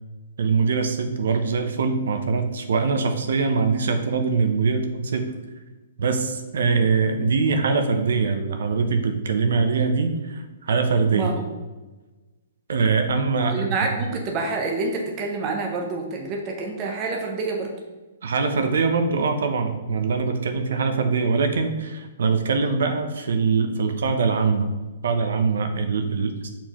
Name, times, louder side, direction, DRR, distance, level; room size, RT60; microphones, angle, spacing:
voice 1, 0.4-5.3 6.0-11.3 12.7-14.0 18.2-24.7 25.0-26.5, right 4 dB, 65° right, 6 dB, 0.7 m, -23 dB
voice 2, 13.4-17.7, right 3 dB, 20° right, 0 dB, 0.6 m, -27 dB
7.3 x 4.4 x 3.0 m, 1.2 s
hypercardioid pair, 180°, 0 cm